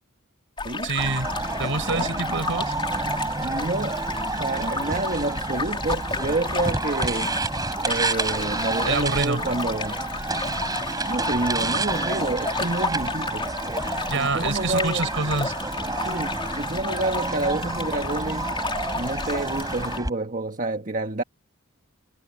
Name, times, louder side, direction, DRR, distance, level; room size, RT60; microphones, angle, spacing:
sound 1, 0.6-20.0, left 3 dB, 25° left, 3.9 m, -32 dB
voice 1, 0.8-1.3 1.6-2.7 8.9-9.4 14.1-15.5, right 3 dB, 65° right, 6.8 m, -26 dB
sound 2, 1.0-20.1, right 2 dB, 20° right, 4.3 m, -29 dB
voice 2, 3.4-4.0 4.4-7.3 7.8-10.0 11.1-13.5 14.1-15.0 15.8-18.6 18.9-21.2, right 2 dB, 40° right, 1.5 m, -28 dB
head